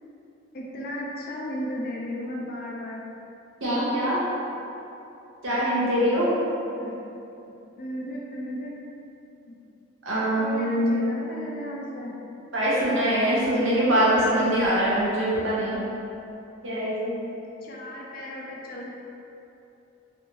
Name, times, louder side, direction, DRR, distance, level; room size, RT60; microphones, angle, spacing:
voice 1, 0.5-3.0 6.7-7.0 7.8-8.7 9.5-9.6 10.4-12.1 13.5-13.6 14.2-14.3 17.6-19.0, equal, 50° left, -3 dB, 0.5 m, -35 dB
voice 2, 3.6-4.2 5.4-6.3 10.0-11.0 12.5-15.8 16.6-17.1, equal, 85° right, -8 dB, 0.9 m, -23 dB
3.2 x 2.6 x 3.0 m, 2.9 s
head